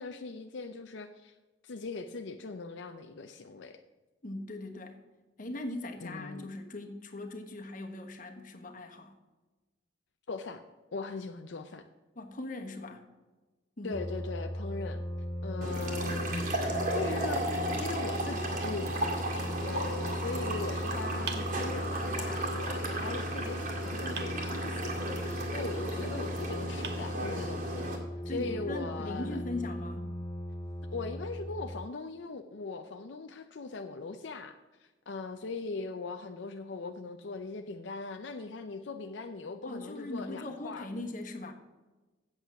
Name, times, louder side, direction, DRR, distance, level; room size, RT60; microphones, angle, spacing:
voice 1, 0.0-1.3 1.6-3.8 6.0-6.5 10.3-10.6 10.9-11.8 13.8-15.0 15.4-16.5 16.9-17.4 17.8-19.1 19.6-27.9 28.2-29.4 30.9-40.9, left 3 dB, 80° left, 6 dB, 0.6 m, -40 dB
voice 2, 4.2-5.0 5.4-9.2 12.1-13.0 13.8-14.0 28.3-30.1 39.6-41.5, left 2 dB, 45° left, 4 dB, 1.3 m, -40 dB
sound 1, 13.9-31.9, equal, 20° left, 0.4 m, -38 dB
sound 2, 15.6-28.0, right 1 dB, 45° right, 2.1 m, -35 dB
sound 3, 21.3-22.3 24.2-25.1 26.2-26.3 26.8-27.8, right 5 dB, 65° right, 1.2 m, -45 dB
8.1 x 8.0 x 5.8 m, 1.2 s
head